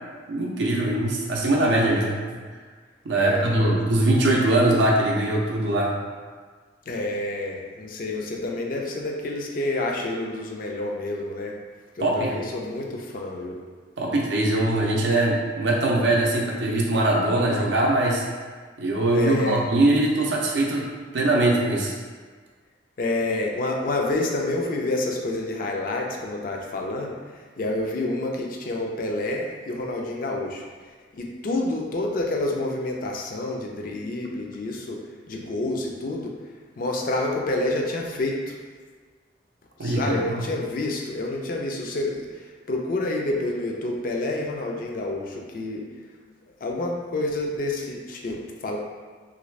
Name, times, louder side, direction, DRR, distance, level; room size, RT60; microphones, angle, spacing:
voice 1, 0.3-2.2 3.1-5.9 12.0-12.3 14.0-18.2 18.8-20.8 21.1-21.9 39.8-40.4, right 1 dB, 65° right, -3 dB, 0.4 m, -22 dB
voice 2, 3.2-3.7 6.9-11.6 12.0-13.6 19.1-19.6 23.0-30.6 31.1-35.0 35.3-36.3 36.8-38.6 39.8-45.8 46.6-48.8, left 2 dB, 45° left, 0 dB, 0.4 m, -28 dB
3.1 x 2.5 x 3.1 m, 1.5 s
head